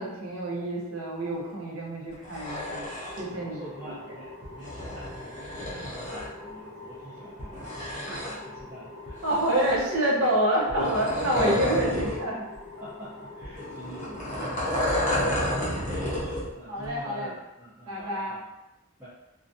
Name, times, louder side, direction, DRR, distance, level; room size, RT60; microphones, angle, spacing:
voice 1, 0.0-3.9 8.1-8.2 9.2-12.4 16.7-17.3 17.9-18.3, right 1 dB, 80° right, -4 dB, 0.7 m, -27 dB
sound 1, 2.1-3.2 4.4-6.3 7.4-8.6 9.1-10.0 10.7-12.2 12.5-12.6 13.4-16.5 16.8-16.9, left 1 dB, 35° left, 0.6 m, -31 dB
sound 2, 2.4-16.2, left 2 dB, 40° right, 0.9 m, -45 dB
voice 2, 3.3-9.7 11.4-11.5 12.4-12.5 12.8-18.4 19.0-19.1, equal, 10° right, -14 dB, 0.5 m, -44 dB
2.4 x 2.2 x 2.6 m, 0.98 s
head